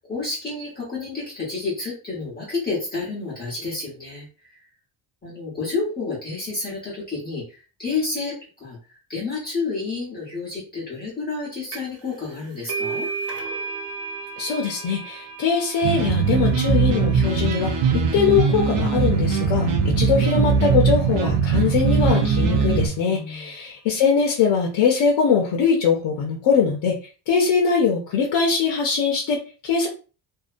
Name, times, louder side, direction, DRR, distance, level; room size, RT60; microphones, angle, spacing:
voice 1, 0.0-4.6 5.2-13.1 23.1-23.5, left 4 dB, 20° left, -7 dB, 1.0 m, -30 dB
sound 1, 11.7-12.0 12.3-19.6, right 4 dB, 35° right, 0.5 m, -35 dB
voice 2, 14.4-27.0 27.3-29.9, left 6 dB, 75° left, -1 dB, 0.7 m, -22 dB
sound 2, 15.8-22.9, right 5 dB, 75° right, 0.7 m, -20 dB
2.7 x 2.1 x 2.5 m, 0.35 s
cardioid pair, 145°, 44 cm